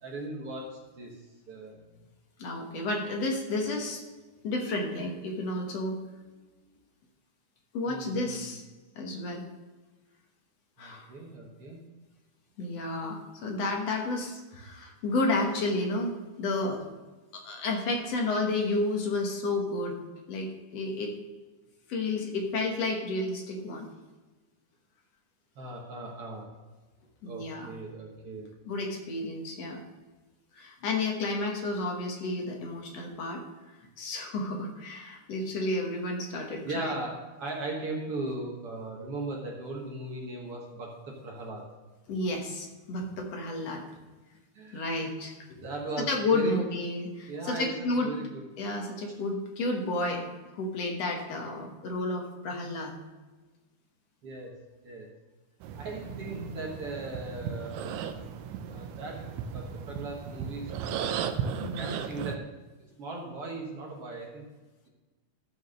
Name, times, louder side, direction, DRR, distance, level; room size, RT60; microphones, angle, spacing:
voice 1, 0.0-1.2 1.5-1.8 7.9-8.5 10.8-11.8 25.6-26.5 27.3-28.5 36.6-41.6 44.6-45.1 45.6-46.6 47.3-48.4 54.2-54.5 54.8-55.1 55.7-58.0 58.6-59.3 59.5-60.7 61.5-62.4 62.8-64.4, right 2 dB, 55° right, -2 dB, 2.1 m, -38 dB
voice 2, 2.4-4.0 4.4-6.0 7.7-8.6 9.0-9.4 10.8-11.1 12.6-16.8 17.3-20.0 20.3-21.1 21.9-23.9 27.2-27.7 28.7-29.8 30.5-33.4 34.0-36.9 42.1-43.8 44.7-45.7 46.1-48.1 48.6-50.2 50.5-52.9 56.3-56.5 61.6-62.0, left 2 dB, 60° left, 1 dB, 2.3 m, -31 dB
sound 1, 55.6-62.4, right 7 dB, 80° right, 2.1 m, -36 dB
13.5 x 4.7 x 6.4 m, 1.2 s
omnidirectional pair, 3.5 m